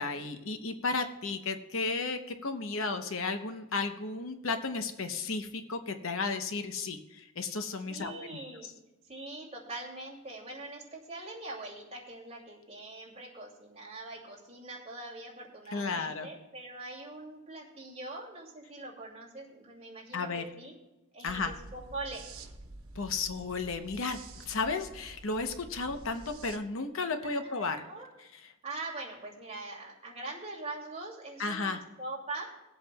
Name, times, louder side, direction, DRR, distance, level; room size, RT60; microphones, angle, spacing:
voice 1, 0.0-8.3 15.7-16.3 20.1-20.4 21.2-21.5 22.9-27.8 28.2-28.5 31.4-31.8, left 4 dB, 70° left, 7 dB, 0.8 m, -34 dB
voice 2, 7.9-8.7 9.1-20.7 21.1-22.2 27.2-28.1 28.6-32.5, right 2 dB, 30° right, -2 dB, 2.5 m, -43 dB
sound 1, 21.3-26.6, right 2 dB, 90° right, 1.1 m, -49 dB
21.5 x 8.0 x 2.3 m, 1.0 s
head